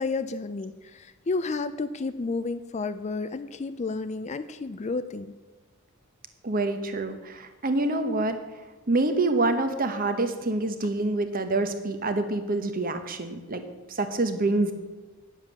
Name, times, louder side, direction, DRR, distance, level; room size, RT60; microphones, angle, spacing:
voice 1, 0.0-5.3, left 3 dB, 30° left, 12 dB, 0.4 m, -31 dB
voice 2, 6.4-8.4 8.9-13.6 13.9-14.7, right 2 dB, 40° right, 8 dB, 1.0 m, -26 dB
9.4 x 7.3 x 7.2 m, 1.2 s
head